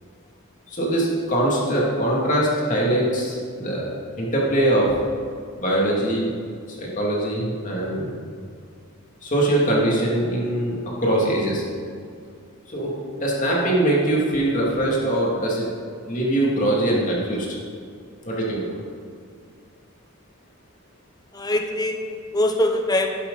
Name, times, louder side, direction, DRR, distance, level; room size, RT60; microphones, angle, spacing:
voice 1, 0.7-3.9 4.2-5.0 5.6-6.3 6.7-8.1 9.2-11.6 12.7-15.7 16.1-17.5 18.2-18.8, right 1 dB, 35° left, -4 dB, 2.5 m, -22 dB
voice 2, 21.3-23.1, left 1 dB, 20° left, 4 dB, 0.8 m, -23 dB
11.5 x 11.0 x 4.1 m, 2.2 s
head